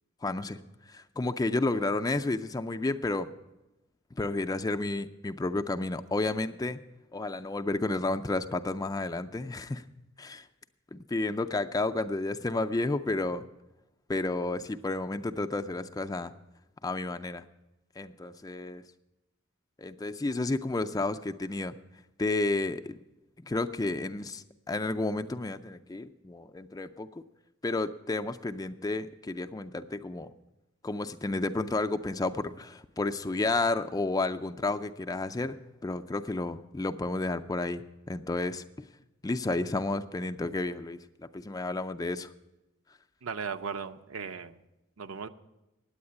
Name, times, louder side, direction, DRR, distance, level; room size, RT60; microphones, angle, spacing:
voice 1, 0.2-0.6 0.9-3.3 4.2-6.8 7.1-9.8 10.2-10.5 10.9-13.5 14.1-16.3 16.8-17.4 18.0-18.8 19.8-21.8 22.2-23.0 23.4-27.2 27.6-30.3 30.8-35.6 35.8-38.6 39.2-41.0 41.3-42.3, left 2 dB, 15° left, 10 dB, 0.4 m, -31 dB
voice 2, 43.2-44.6 45.0-45.3, right 5 dB, 80° right, 8 dB, 0.7 m, -37 dB
9.4 x 8.7 x 9.6 m, 0.97 s
head